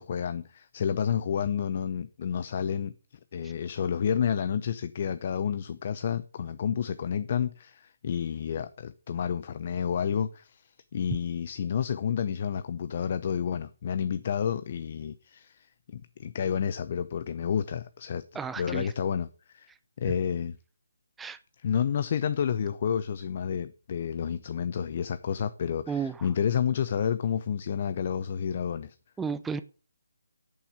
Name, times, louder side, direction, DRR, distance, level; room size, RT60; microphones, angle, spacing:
voice 1, 0.0-3.0 3.3-18.2 18.6-19.7 20.0-20.6 21.6-29.0, left 7 dB, 40° left, 0.7 m, -30 dB
voice 2, 18.3-18.9 21.2-21.4 25.9-26.3 29.2-29.6, right 6 dB, 5° right, 0.5 m, -33 dB
8.7 x 7.1 x 8.3 m
figure-of-eight pair, 155°, 0 cm